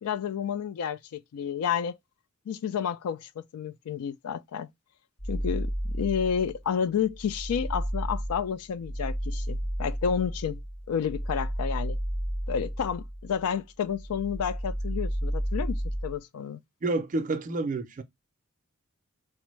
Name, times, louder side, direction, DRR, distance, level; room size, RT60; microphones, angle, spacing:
voice 1, 0.0-2.0 2.5-4.7 5.3-10.6 10.9-12.0 12.5-16.6, left 7 dB, 85° left, 0.3 m, -30 dB
sound 1, 5.2-6.6 7.0-13.6 13.9-16.2, equal, 25° left, 0.6 m, -32 dB
voice 2, 16.8-18.0, right 2 dB, 35° right, 0.4 m, -29 dB
3.3 x 2.0 x 3.0 m
head